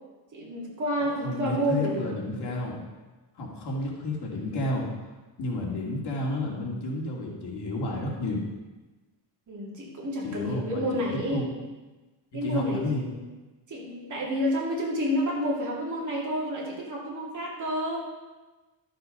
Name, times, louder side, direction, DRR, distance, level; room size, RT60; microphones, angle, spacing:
voice 1, 0.3-2.2 9.5-11.5 12.3-13.2 13.7-18.0, equal, 40° right, -3 dB, 2.6 m, -29 dB
voice 2, 1.2-2.8 3.4-4.9 5.4-8.4 10.2-11.5 12.4-13.0, left 2 dB, 60° left, -2 dB, 2.4 m, -31 dB
12.0 x 6.7 x 5.3 m, 1.2 s
cardioid pair, 170°, 45 cm